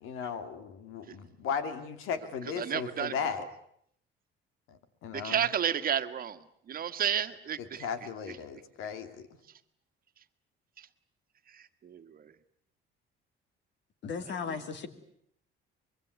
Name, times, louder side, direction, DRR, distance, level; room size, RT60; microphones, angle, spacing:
voice 1, 0.0-3.4 5.0-5.4 7.8-9.1, left 6 dB, 85° left, 2.8 m, -36 dB
voice 2, 2.4-3.5 5.1-7.9 8.3-8.4 10.8-10.9 11.5-12.3, right 9 dB, 45° right, 1.6 m, -33 dB
voice 3, 14.0-14.9, left 5 dB, 60° left, 2.8 m, -36 dB
25.0 x 23.0 x 9.5 m
cardioid pair, 130°, 21 cm